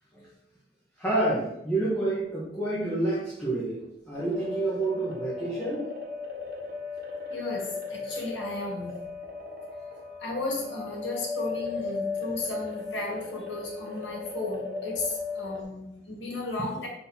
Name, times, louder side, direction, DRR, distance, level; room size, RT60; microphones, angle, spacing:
voice 1, 1.0-3.8 4.1-5.9, right 2 dB, 10° left, -8 dB, 1.7 m, -28 dB
sound 1, 4.1-15.6, left 4 dB, 55° right, 1.6 m, -36 dB
voice 2, 7.3-8.9 10.2-16.9, left 2 dB, 85° left, -1 dB, 2.2 m, -34 dB
5.4 x 4.2 x 5.7 m, 0.80 s
head